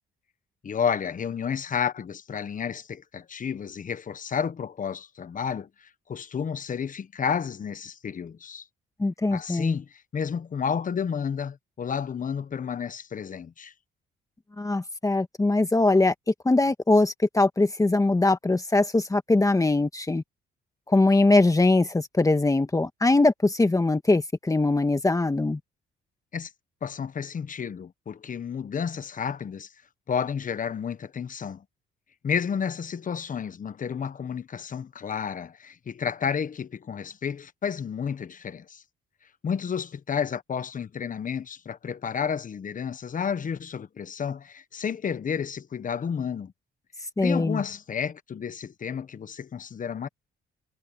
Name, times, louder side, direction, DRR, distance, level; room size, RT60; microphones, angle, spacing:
voice 1, 0.6-8.6 9.3-13.7 26.3-26.5 26.8-29.7 30.1-31.6 32.2-38.8 39.4-46.5 47.2-50.1, left 7 dB, 40° left, 1.2 m, -31 dB
voice 2, 9.0-9.7 14.6-20.2 20.9-25.6 47.2-47.6, left 2 dB, 15° left, 1.6 m, -22 dB
cardioid pair, 90°, 20 cm